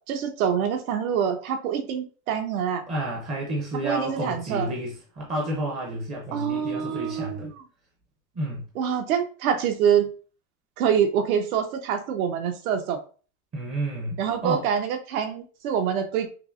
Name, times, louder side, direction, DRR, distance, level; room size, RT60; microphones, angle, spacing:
voice 1, 0.1-2.8 3.8-4.7 6.3-7.6 8.7-10.1 10.8-13.0 14.2-16.3, right 8 dB, 75° right, 1.0 m, -25 dB
voice 2, 2.9-7.5 8.3-8.6 13.5-14.6, right 1 dB, 15° right, 0.5 m, -30 dB
5.7 x 2.1 x 2.5 m
supercardioid pair, 160°, 43 cm